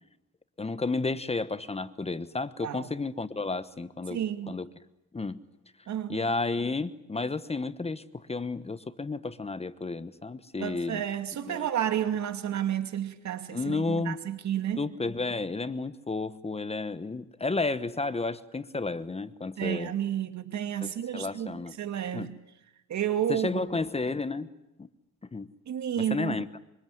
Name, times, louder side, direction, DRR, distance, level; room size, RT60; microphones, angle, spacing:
voice 1, 0.6-4.7 5.1-5.4 6.1-11.0 11.4-11.7 13.5-14.2 14.8-19.9 20.8-21.8 22.1-22.3 23.3-24.5 24.8-24.9 25.3-25.5 26.1-26.5, left 3 dB, 20° left, 1.1 m, -32 dB
voice 2, 4.1-4.6 5.9-6.3 10.6-14.9 19.6-22.4 22.9-23.6 25.7-26.4, right 10 dB, 65° right, 2.5 m, -31 dB
25.0 x 24.5 x 9.5 m
cardioid pair, 90°, 30 cm